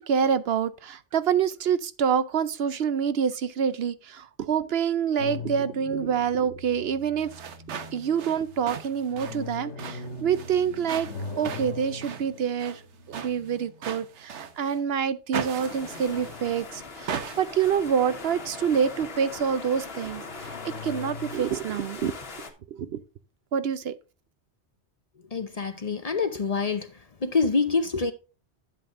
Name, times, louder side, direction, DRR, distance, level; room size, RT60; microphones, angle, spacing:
voice 1, 0.0-7.3 7.9-11.1 11.4-12.8 13.1-22.1 22.7-23.0 23.5-23.9, right 7 dB, 65° right, 0.8 m, -27 dB
sound 1, 5.2-14.5 15.8-17.4 17.8-18.9 20.2-21.9, left 4 dB, 90° left, 1.5 m, -42 dB
sound 2, 7.2-14.8 15.3-16.6 17.1-17.8, right 7 dB, 85° right, 1.2 m, -39 dB
sound 3, 15.6-22.5, left 3 dB, 60° left, 1.6 m, -41 dB
voice 2, 25.3-26.9 27.2-28.1, left 4 dB, 40° left, 0.7 m, -26 dB
11.0 x 7.8 x 2.5 m
omnidirectional pair, 1.1 m